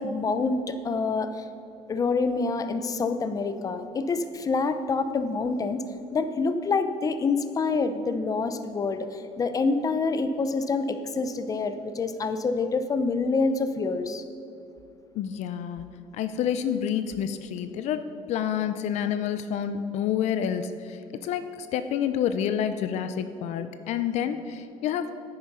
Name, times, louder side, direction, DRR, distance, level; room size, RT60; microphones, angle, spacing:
voice 1, 0.0-1.5 1.9-5.8 6.1-14.2, left 4 dB, 30° left, 9 dB, 0.7 m, -27 dB
voice 2, 15.1-15.8 16.1-18.0 18.3-25.1, left 9 dB, 70° left, 10 dB, 0.6 m, -28 dB
10.0 x 8.9 x 5.5 m, 2.6 s
cardioid pair, 115°, 12 cm